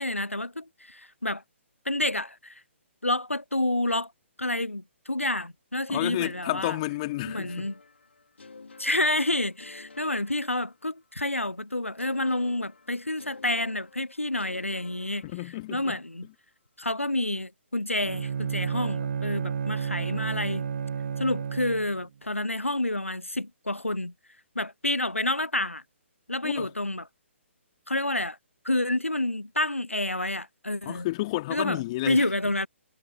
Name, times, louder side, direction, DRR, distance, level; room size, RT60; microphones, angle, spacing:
voice 1, 0.0-1.4 1.9-2.6 3.0-4.1 4.4-6.8 7.2-7.8 8.8-15.2 15.7-16.3 16.8-20.7 21.2-24.1 24.5-25.8 26.3-27.1 27.9-28.4 28.6-31.1 31.5-31.8 32.1-32.7, left 1 dB, 90° left, 0.7 m, -29 dB
voice 2, 5.9-7.7 15.2-16.0 26.4-26.7 30.8-32.2, left 18 dB, 30° left, 3.1 m, -31 dB
sound 1, 7.2-11.1 12.0-15.8, left 4 dB, 65° left, 4.6 m, -51 dB
Bowed string instrument, 17.9-22.0, right 7 dB, 50° right, 0.6 m, -31 dB
figure-of-eight pair, 135°, 7 cm